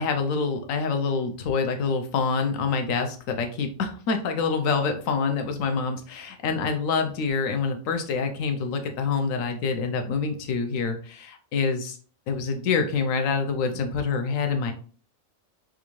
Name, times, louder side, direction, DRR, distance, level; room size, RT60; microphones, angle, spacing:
voice 1, 0.0-12.0 12.3-14.7, left 5 dB, 75° left, 6 dB, 1.0 m, -26 dB
3.6 x 2.5 x 2.9 m, 0.41 s
omnidirectional pair, 1.4 m